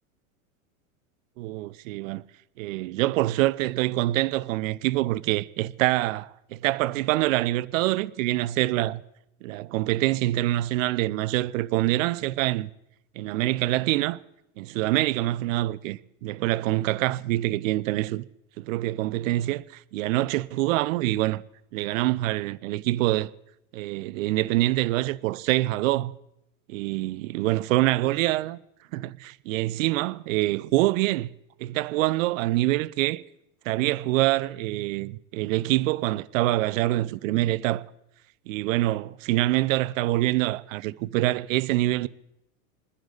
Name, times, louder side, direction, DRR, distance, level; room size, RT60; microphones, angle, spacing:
voice 1, 1.4-2.2 2.6-9.0 9.4-12.7 13.2-14.2 14.6-18.2 18.6-21.4 21.7-23.3 23.7-26.1 26.7-28.6 28.9-31.3 31.6-33.2 33.7-37.8 38.5-42.1, right 17 dB, 65° right, 0.7 m, -25 dB
27.5 x 10.0 x 4.0 m
supercardioid pair, 130°, 42 cm